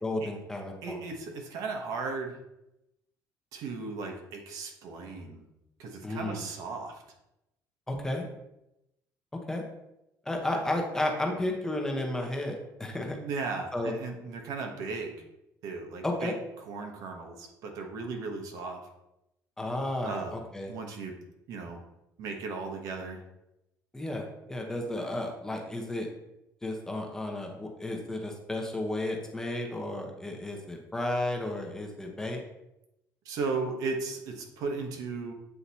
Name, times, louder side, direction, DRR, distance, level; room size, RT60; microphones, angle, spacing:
voice 1, 0.0-1.0 6.0-6.4 7.9-8.3 9.5-9.6 10.2-13.2 13.7-13.9 16.0-16.3 19.6-20.7 23.9-26.1 26.6-32.4, left 1 dB, 10° left, 1 dB, 0.9 m, -33 dB
voice 2, 0.8-2.4 3.5-5.5 5.8-7.0 10.5-10.6 13.2-15.2 15.6-16.3 16.7-18.8 20.0-20.4 20.7-21.1 21.5-21.8 22.2-23.2 33.2-35.3, right 4 dB, 65° right, 3 dB, 1.1 m, -36 dB
8.2 x 2.9 x 4.1 m, 0.89 s
cardioid pair, 140°, 6 cm